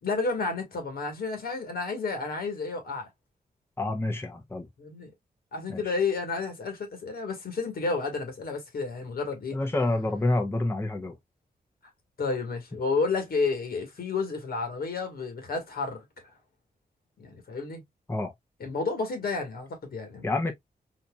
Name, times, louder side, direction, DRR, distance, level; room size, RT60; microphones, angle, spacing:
voice 1, 0.0-3.1 4.8-5.1 5.5-9.6 12.2-16.0 17.2-17.8 18.6-20.3, left 4 dB, 80° left, 1.5 m, -31 dB
voice 2, 3.8-4.7 5.7-6.0 9.5-11.2 18.1-18.3 20.2-20.5, left 2 dB, 15° left, 0.7 m, -28 dB
4.0 x 2.8 x 2.3 m
wide cardioid pair, 110°, 16 cm